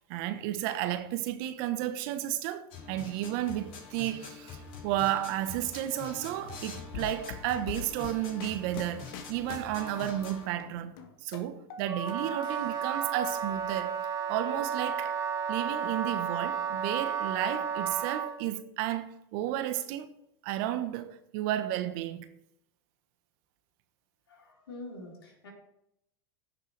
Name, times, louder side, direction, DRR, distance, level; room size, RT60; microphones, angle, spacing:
voice 1, 0.1-10.9 11.2-14.0 14.3-15.2 15.5-20.1 20.4-22.3, right 12 dB, 60° right, 1.0 m, -32 dB
sound 1, 2.7-10.5, left 5 dB, 50° left, 3.7 m, -45 dB
sound 2, 6.9-10.3 10.6-12.1 12.4-13.3, left 8 dB, 65° left, 1.5 m, -43 dB
Wind instrument woodwind instrument, 11.9-18.4, right 7 dB, 25° right, 1.9 m, -32 dB
voice 2, 24.3-25.5, left 2 dB, 85° left, 4.2 m, -45 dB
15.5 x 6.5 x 3.3 m
hypercardioid pair, 95°, 13 cm